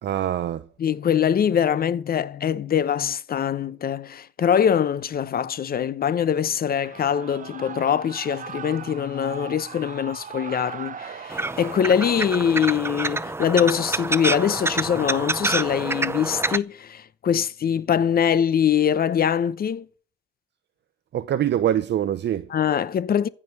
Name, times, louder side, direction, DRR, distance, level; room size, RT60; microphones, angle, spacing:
voice 1, 0.0-0.7 21.1-22.5, right 11 dB, 60° right, 0.8 m, -24 dB
voice 2, 0.8-19.9 22.5-23.3, left 8 dB, 50° left, 0.8 m, -23 dB
Shout / Cheering, 6.7-12.1, right 6 dB, 40° right, 1.0 m, -39 dB
sound 1, 11.3-16.6, right 2 dB, 10° right, 0.6 m, -27 dB
15.0 x 5.1 x 9.6 m
cardioid pair, 90°, 20 cm